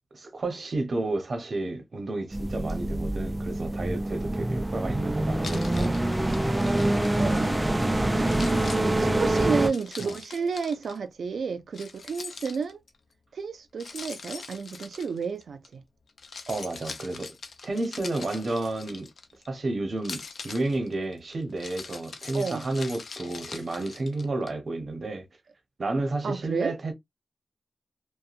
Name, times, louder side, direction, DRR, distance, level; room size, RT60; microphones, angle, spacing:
voice 1, 0.1-6.3 8.8-9.5 10.0-10.2 16.5-17.3 17.6-19.1 19.5-25.3 25.8-26.9, right 2 dB, 60° right, 0.9 m, -31 dB
sound 1, 2.3-9.7, right 1 dB, 15° right, 0.4 m, -26 dB
Keys jangling, 5.4-7.9 8.2-11.0 11.7-12.9 13.8-15.7 16.1-19.5 20.0-24.5, left 4 dB, 75° left, 0.5 m, -42 dB
voice 2, 7.2-7.7 8.7-12.8 13.3-15.8 22.3-22.7 26.2-26.7, right 5 dB, 90° right, 0.4 m, -31 dB
2.7 x 2.2 x 2.4 m
wide cardioid pair, 75°, 0 cm